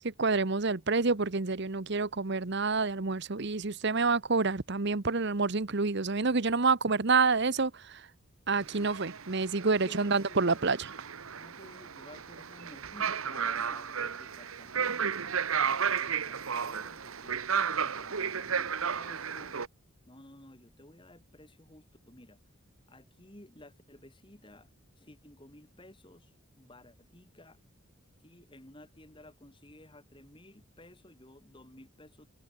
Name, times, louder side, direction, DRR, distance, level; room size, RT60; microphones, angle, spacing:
voice 1, 0.0-8.1 8.5-10.9, right 4 dB, 55° right, 1.0 m, -28 dB
voice 2, 8.6-8.9 9.6-10.6 11.4-19.6 20.1-22.4 22.9-24.7 25.0-27.6 28.2-32.3, left 1 dB, 25° left, 3.1 m, -55 dB
sound 1, 8.6-19.7, right 7 dB, 80° right, 1.1 m, -33 dB
head